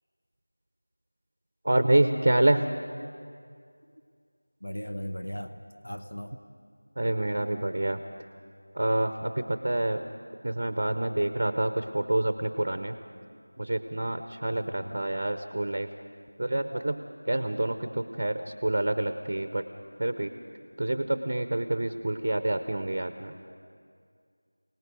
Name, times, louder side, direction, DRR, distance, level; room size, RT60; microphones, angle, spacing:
voice 1, 1.6-2.7 7.0-8.0 8.7-10.0 10.4-12.9 13.6-15.9 16.4-19.6 20.0-20.3 20.8-23.3, right 1 dB, 25° right, 9 dB, 0.6 m, -27 dB
voice 2, 4.6-5.6 5.8-6.3 14.5-15.0, equal, 85° left, 7 dB, 1.1 m, -37 dB
30.0 x 18.5 x 5.1 m, 2.3 s
figure-of-eight pair, 180°, 0 cm